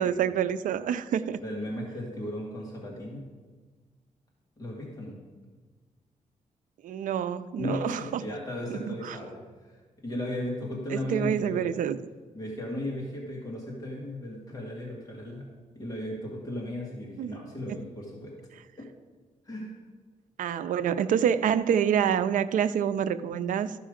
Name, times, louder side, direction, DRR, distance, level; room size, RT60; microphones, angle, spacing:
voice 1, 0.0-1.4 6.8-8.2 8.7-9.2 10.9-12.0 17.2-17.4 17.7-17.8 20.4-23.8, right 8 dB, 80° right, 13 dB, 0.5 m, -27 dB
voice 2, 1.4-3.2 4.6-5.2 7.6-11.8 12.3-15.5 15.8-18.3 18.8-18.9 19.5-19.7, left 1 dB, 25° left, -2 dB, 1.9 m, -36 dB
13.0 x 5.6 x 5.0 m, 1.4 s
wide cardioid pair, 150°, 13 cm